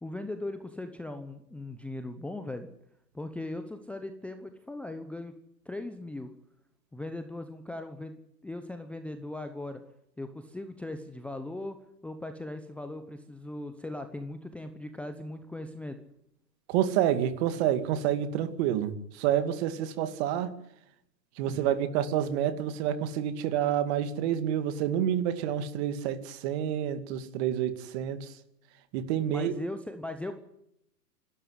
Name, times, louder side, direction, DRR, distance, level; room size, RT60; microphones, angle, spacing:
voice 1, 0.0-2.7 3.1-5.3 5.7-6.3 6.9-9.8 10.2-11.8 12.0-16.0 21.5-21.7 29.3-30.4, left 2 dB, 5° left, 7 dB, 0.9 m, -39 dB
voice 2, 16.7-20.5 21.4-28.3 28.9-29.5, right 10 dB, 40° right, 12 dB, 2.4 m, -28 dB
26.5 x 12.5 x 9.7 m, 0.77 s
hypercardioid pair, 140°, 49 cm